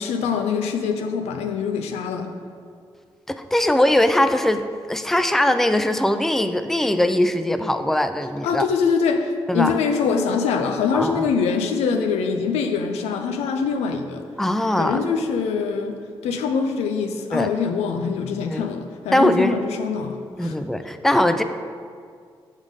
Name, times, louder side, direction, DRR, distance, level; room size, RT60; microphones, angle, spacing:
voice 1, 0.0-2.3 8.4-14.2 14.8-20.5, left 5 dB, 90° left, 5 dB, 0.4 m, -24 dB
voice 2, 3.3-4.6 4.9-8.7 9.5-9.8 10.9-11.3 14.4-15.0 17.3-17.5 18.5-18.7 19.1-19.6 20.4-21.4, left 1 dB, 5° left, 9 dB, 0.4 m, -20 dB
6.3 x 3.7 x 5.0 m, 2.2 s
supercardioid pair, 45°, 11 cm